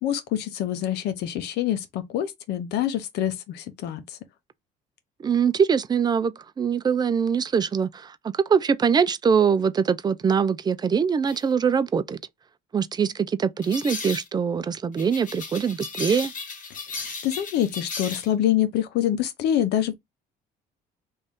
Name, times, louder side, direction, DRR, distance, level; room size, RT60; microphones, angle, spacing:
voice 1, 0.0-4.0 17.2-19.9, left 11 dB, 80° left, 0.8 m, -25 dB
voice 2, 5.2-12.2 12.7-16.3, right 6 dB, 25° right, 0.4 m, -23 dB
sound 1, 11.3-11.4 13.6-14.3 15.0-18.3, left 4 dB, 50° left, 1.5 m, -35 dB
3.1 x 2.7 x 3.6 m
cardioid pair, 110°, 17 cm